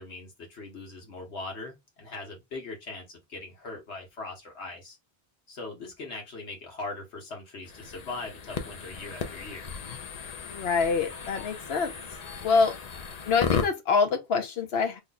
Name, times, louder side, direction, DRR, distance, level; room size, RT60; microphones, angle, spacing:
voice 1, 0.0-5.0 5.5-9.7, left 3 dB, 85° left, 1.5 m, -40 dB
sound 1, 7.6-13.7, left 6 dB, 45° left, 0.6 m, -35 dB
voice 2, 10.5-11.9 12.4-12.7 13.3-15.0, left 5 dB, 70° left, 1.0 m, -25 dB
3.1 x 2.3 x 3.9 m
omnidirectional pair, 1.1 m